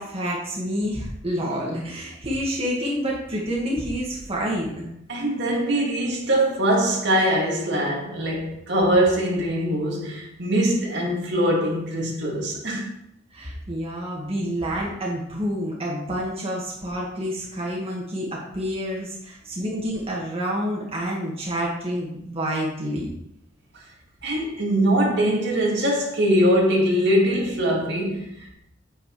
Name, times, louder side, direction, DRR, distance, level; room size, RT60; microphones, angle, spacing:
voice 1, 0.0-4.9 13.3-23.1, equal, 30° right, 1.9 m, -28 dB
voice 2, 5.1-12.9 24.2-28.5, equal, 60° right, 2.3 m, -22 dB
8.7 x 8.5 x 3.3 m
head